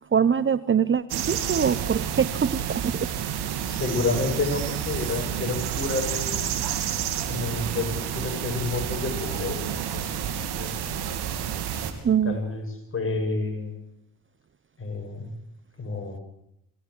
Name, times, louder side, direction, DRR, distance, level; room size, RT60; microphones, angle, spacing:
voice 1, 0.1-3.1 12.0-12.4, right 7 dB, 30° right, 15 dB, 0.9 m, -23 dB
sound 1, 1.1-11.9, right 9 dB, 80° right, 3.2 m, -30 dB
voice 2, 3.6-6.5 7.3-10.8 12.2-12.7 12.9-13.7 14.8-15.3 15.8-16.2, left 3 dB, 35° left, 2 dB, 7.8 m, -30 dB
24.5 x 17.0 x 8.0 m, 0.81 s
cardioid pair, 85°, 38 cm